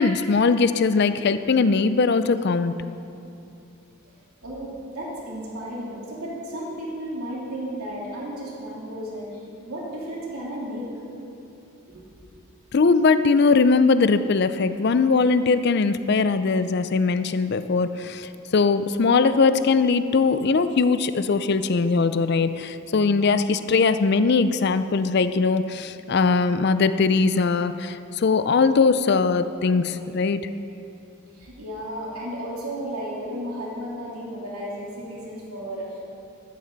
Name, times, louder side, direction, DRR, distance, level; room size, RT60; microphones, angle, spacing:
voice 1, 0.0-2.8 12.7-30.5, left 4 dB, 50° left, 12 dB, 0.4 m, -20 dB
voice 2, 4.4-10.9 11.9-12.2 31.3-36.0, equal, 80° right, -5 dB, 3.1 m, -34 dB
13.5 x 12.0 x 4.0 m, 2.8 s
head